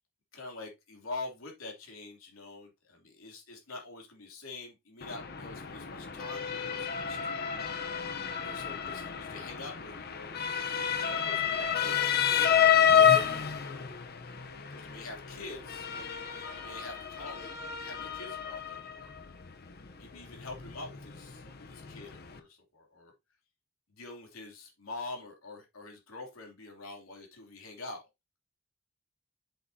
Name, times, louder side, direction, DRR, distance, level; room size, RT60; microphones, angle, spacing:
voice 1, 0.3-7.5 8.4-10.4 10.9-11.9 12.2-13.8 14.7-17.5 17.8-19.1 20.0-23.1 23.9-28.0, left 3 dB, 90° left, 1 dB, 3.0 m, -45 dB
Motor vehicle (road) / Siren, 5.0-22.4, left 8 dB, 50° left, 0.8 m, -30 dB
7.8 x 6.5 x 2.8 m, 0.22 s
head